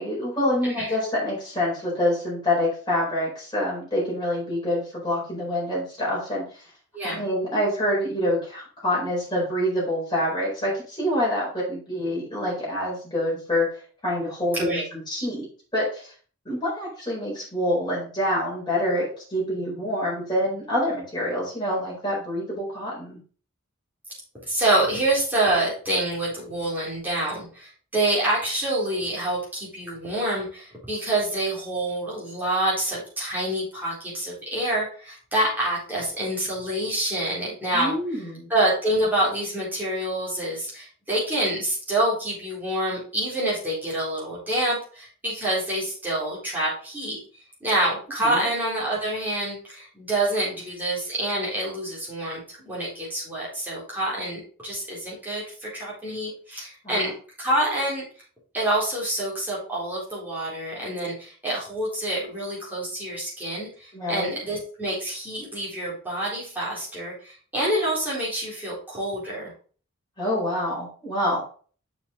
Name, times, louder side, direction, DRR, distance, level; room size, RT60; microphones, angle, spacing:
voice 1, 0.0-6.4 7.0-15.5 15.7-16.1 16.4-23.2 37.7-38.5 48.2-48.5 56.8-57.0 63.9-64.3 70.2-71.4, left 1 dB, 20° left, -5 dB, 4.7 m, -26 dB
voice 2, 24.3-37.9 38.5-47.2 47.6-57.1 57.4-58.0 58.5-69.5, right 1 dB, 10° right, -7 dB, 4.1 m, -27 dB
6.9 x 6.7 x 3.9 m, 0.42 s
head